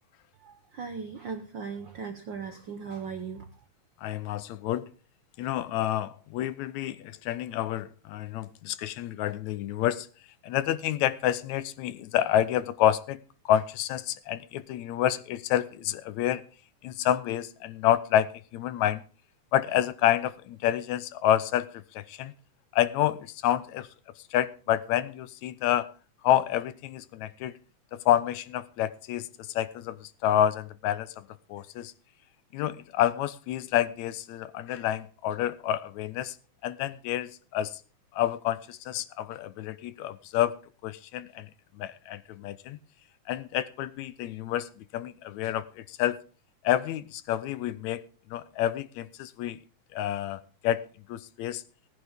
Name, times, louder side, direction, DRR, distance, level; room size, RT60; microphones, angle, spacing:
voice 1, 0.4-3.5, right 5 dB, 75° right, 1.0 m, -38 dB
voice 2, 4.0-4.9 5.4-10.1 10.4-16.4 16.8-19.0 19.5-21.7 22.0-22.3 22.7-23.9 24.3-25.9 26.2-27.5 27.9-29.3 29.6-31.9 32.5-36.4 36.6-37.8 38.1-40.5 40.8-41.5 41.8-42.8 43.3-44.7 44.9-46.2 46.6-48.0 48.3-49.6 49.9-50.8 51.1-51.6, left 12 dB, 75° left, 1.9 m, -28 dB
18.5 x 9.8 x 3.5 m
omnidirectional pair, 3.6 m